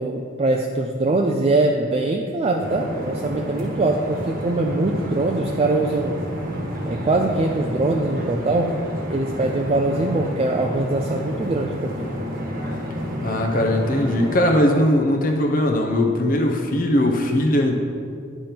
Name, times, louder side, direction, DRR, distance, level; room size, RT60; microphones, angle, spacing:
voice 1, 0.0-6.2 6.9-8.7 9.1-12.1, right 2 dB, 30° right, 2 dB, 0.4 m, -22 dB
sound 1, 2.6-14.3, equal, 45° right, 1.2 m, -30 dB
voice 2, 13.2-17.7, left 1 dB, 45° left, 2 dB, 0.7 m, -20 dB
9.5 x 4.4 x 5.2 m, 2.3 s
head